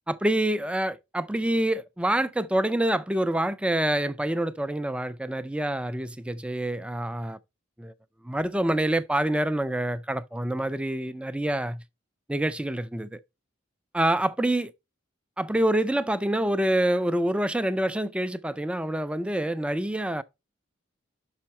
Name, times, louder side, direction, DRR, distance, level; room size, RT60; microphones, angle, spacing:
voice 1, 0.1-7.4 7.8-7.9 8.2-11.8 12.3-13.2 13.9-14.7 15.4-20.2, right 1 dB, 5° right, 0.4 m, -26 dB
6.1 x 5.7 x 4.2 m
head